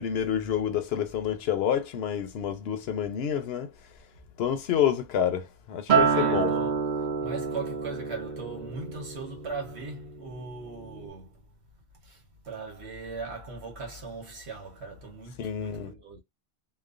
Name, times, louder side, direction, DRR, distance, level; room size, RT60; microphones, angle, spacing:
voice 1, 0.0-3.7 4.4-6.5 15.4-15.9, left 9 dB, 75° left, 0.8 m, -28 dB
Acoustic guitar, 5.9-10.3 10.7-11.1, right 6 dB, 50° right, 0.8 m, -28 dB
voice 2, 6.1-6.8 7.2-11.4 12.0-16.2, right 4 dB, 80° right, 1.3 m, -39 dB
3.1 x 2.0 x 2.4 m
omnidirectional pair, 1.1 m